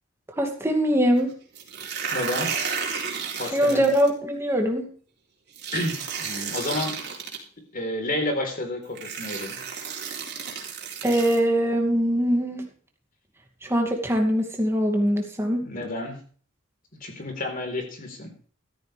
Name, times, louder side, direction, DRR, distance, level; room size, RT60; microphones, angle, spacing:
voice 1, 0.4-1.3 3.5-4.9 11.0-12.7 13.7-15.7, equal, 15° right, 2 dB, 2.5 m, -22 dB
sound 1, 1.5-4.1 5.6-7.4 8.4-8.5 8.9-11.4, right 6 dB, 55° right, 3.6 m, -32 dB
voice 2, 2.1-2.5 3.4-3.8 5.7-6.9 7.7-9.6 15.6-16.2 16.9-18.3, left 1 dB, 45° left, 3 dB, 4.1 m, -30 dB
14.0 x 13.5 x 3.5 m, 0.44 s
head